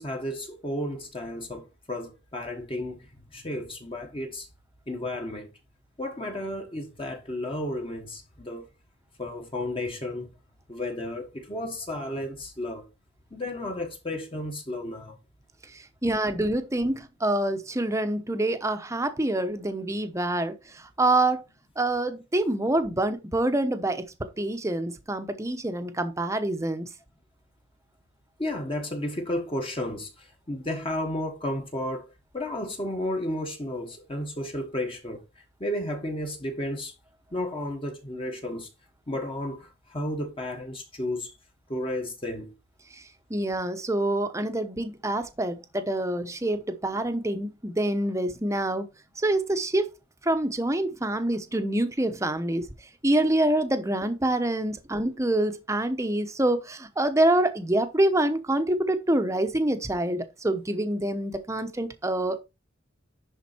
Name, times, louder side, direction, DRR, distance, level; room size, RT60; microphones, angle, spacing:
voice 1, 0.0-4.5 4.9-5.5 6.0-8.7 9.2-10.3 10.7-12.9 13.3-15.2 28.4-35.2 35.6-36.9 37.3-38.7 39.1-41.3 41.7-42.5, left 1 dB, 25° left, 1.3 m, -33 dB
voice 2, 16.0-20.5 21.0-21.4 21.8-24.1 24.4-26.9 43.3-48.9 49.2-49.9 50.2-52.7 53.0-62.4, right 1 dB, 15° right, 0.9 m, -26 dB
10.5 x 4.0 x 4.3 m
head